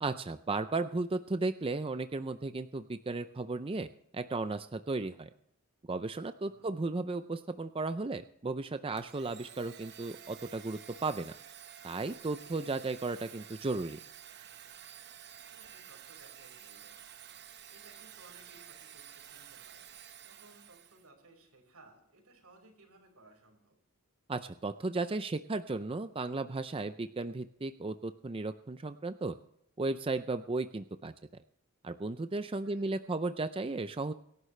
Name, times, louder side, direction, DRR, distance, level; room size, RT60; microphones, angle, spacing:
voice 1, 0.0-3.9 4.1-5.3 5.9-11.3 11.8-14.0 24.3-29.4 29.8-31.1 31.8-34.1, right 3 dB, 25° right, 10 dB, 0.5 m, -35 dB
Domestic sounds home sounds, 9.0-21.1, right 9 dB, 50° right, 0.9 m, -51 dB
voice 2, 15.5-23.8 32.6-32.9, right 2 dB, 85° right, 2 dB, 5.4 m, -60 dB
24.5 x 11.0 x 3.3 m, 0.75 s
head